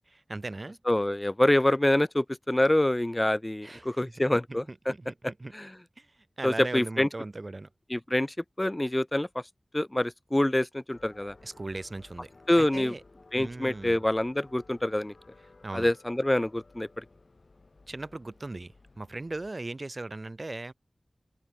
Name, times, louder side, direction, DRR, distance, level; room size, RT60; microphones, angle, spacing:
voice 1, 0.1-0.8 3.6-4.1 4.7-5.5 6.0-6.1 6.4-7.7 11.4-12.3 12.5-13.0 13.3-14.0 15.6-15.9 17.9-20.7, right 2 dB, 50° right, 2.1 m, -38 dB
voice 2, 0.9-4.9 5.5-5.7 6.4-7.1 7.9-9.4 9.7-11.3 12.5-12.9 13.3-15.1 15.7-16.9, left 1 dB, 25° left, 0.7 m, -26 dB
sound 1, 10.9-19.5, left 3 dB, 65° left, 4.9 m, -56 dB
wide cardioid pair, 45°, 0 cm